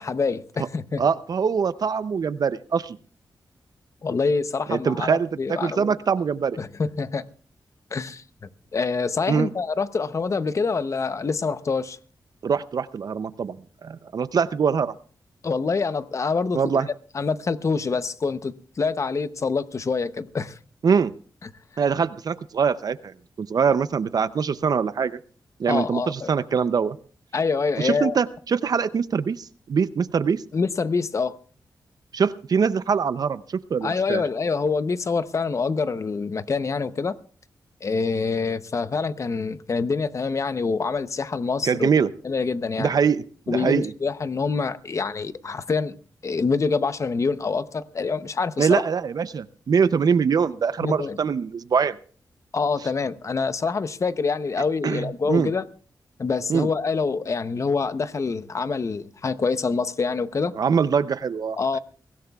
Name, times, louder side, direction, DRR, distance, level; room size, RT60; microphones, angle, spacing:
voice 1, 0.0-1.0 4.0-5.9 6.6-7.2 7.9-12.0 15.4-16.6 17.1-20.6 25.7-26.3 27.3-28.2 30.5-31.4 33.8-37.2 37.8-41.9 42.2-42.9 43.5-46.0 46.2-48.8 50.8-51.2 52.5-55.6 56.2-60.5 61.6-61.8, left 4 dB, 45° left, 0.7 m, -26 dB
voice 2, 1.0-3.0 4.7-6.6 9.3-9.5 12.4-13.6 13.8-14.9 16.5-16.9 20.8-21.1 21.8-25.2 25.6-27.0 27.8-30.4 32.1-34.2 41.6-42.1 42.8-43.9 48.6-52.0 54.8-55.5 56.5-56.7 60.6-61.8, right 6 dB, 60° right, 0.5 m, -23 dB
23.0 x 17.0 x 2.3 m
wide cardioid pair, 115°, 7 cm